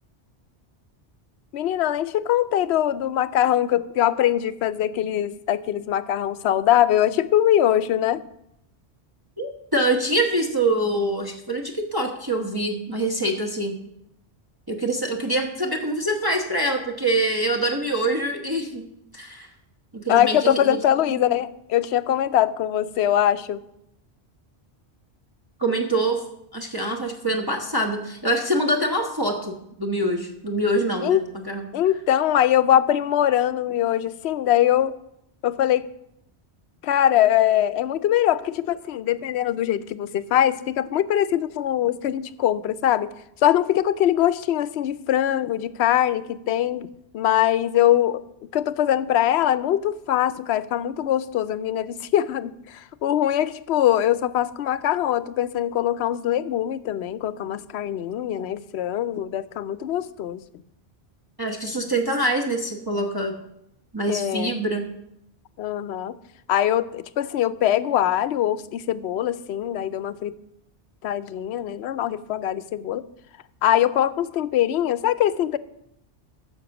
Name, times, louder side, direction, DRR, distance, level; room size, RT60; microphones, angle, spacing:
voice 1, 1.5-8.2 20.1-23.6 31.0-31.2 31.7-34.9 35.4-35.8 36.8-43.1 43.4-46.9 47.1-48.2 48.5-60.4 64.1-64.5 65.6-66.1 66.5-70.3 71.0-73.1 73.6-75.6, left 11 dB, 75° left, 16 dB, 0.8 m, -22 dB
voice 2, 9.4-13.8 14.7-18.9 19.1-19.5 19.9-20.8 25.6-26.2 26.5-31.2 31.5-31.7 61.4-63.4 63.9-64.9, right 1 dB, 20° right, 0 dB, 1.0 m, -25 dB
9.9 x 6.9 x 7.0 m, 0.79 s
omnidirectional pair, 1.1 m